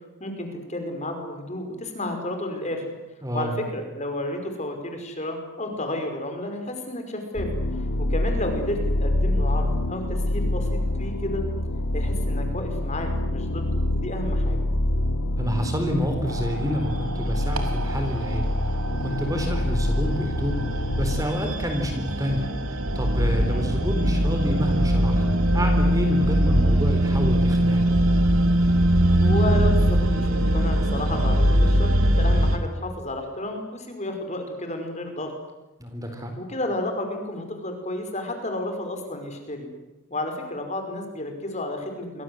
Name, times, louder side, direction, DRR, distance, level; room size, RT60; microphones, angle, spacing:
voice 1, 0.2-2.9 3.3-7.5 7.7-7.8 8.1-10.7 11.0-11.4 11.9-14.6 23.4-23.7 29.2-35.3 36.4-39.7 40.1-42.2, left 1 dB, 30° left, 5 dB, 5.3 m, -31 dB
voice 2, 3.2-3.5 15.4-25.2 25.5-27.9 35.8-36.3, equal, 15° right, 4 dB, 4.0 m, -28 dB
sound 1, 7.4-21.3, left 1 dB, 90° left, 2.5 m, -26 dB
sound 2, 16.3-32.6, right 1 dB, 70° right, 3.3 m, -22 dB
28.5 x 24.5 x 7.9 m, 1.0 s
head